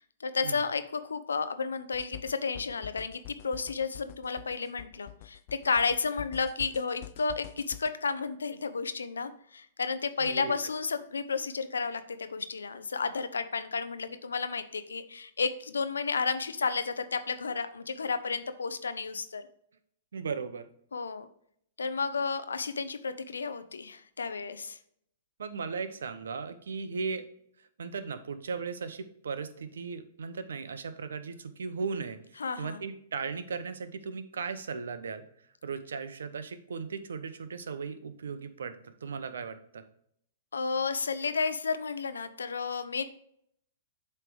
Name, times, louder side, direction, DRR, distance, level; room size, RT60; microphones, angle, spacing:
voice 1, 0.0-5.4 5.6-19.4 20.9-21.3 21.8-24.8 32.4-32.8 40.5-43.0, left 5 dB, 90° left, 11 dB, 0.6 m, -32 dB
sound 1, 1.9-7.9, left 15 dB, 50° left, 0.3 m, -47 dB
voice 2, 10.2-10.5 20.1-20.6 25.4-27.2 27.6-35.3 35.6-38.8 39.0-39.8, right 5 dB, 80° right, 11 dB, 0.7 m, -37 dB
7.7 x 3.3 x 4.7 m, 0.69 s
hypercardioid pair, 120°, 0 cm